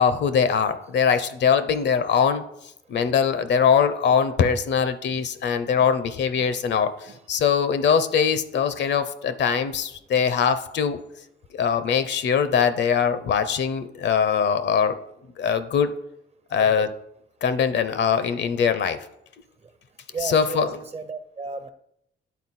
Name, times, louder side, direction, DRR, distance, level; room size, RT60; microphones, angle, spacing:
voice 1, 0.0-2.4 2.9-11.0 11.6-15.0 15.4-15.9 16.5-16.9 17.4-19.1 20.2-20.7, left 7 dB, 60° left, 12 dB, 0.7 m, -22 dB
voice 2, 20.1-21.7, right 4 dB, 30° right, 10 dB, 0.7 m, -34 dB
9.3 x 4.1 x 4.2 m, 0.76 s
cardioid pair, 90°, 20 cm